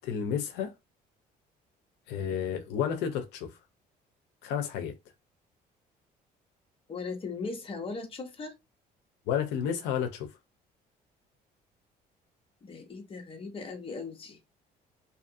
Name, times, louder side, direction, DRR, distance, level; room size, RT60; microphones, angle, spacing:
voice 1, 0.0-0.7 2.1-3.6 4.4-4.9 9.3-10.3, left 8 dB, 90° left, 0.6 m, -31 dB
voice 2, 6.9-8.5 12.6-14.4, left 4 dB, 30° left, 0.9 m, -38 dB
2.7 x 2.5 x 2.5 m
cardioid pair, 110°, 17 cm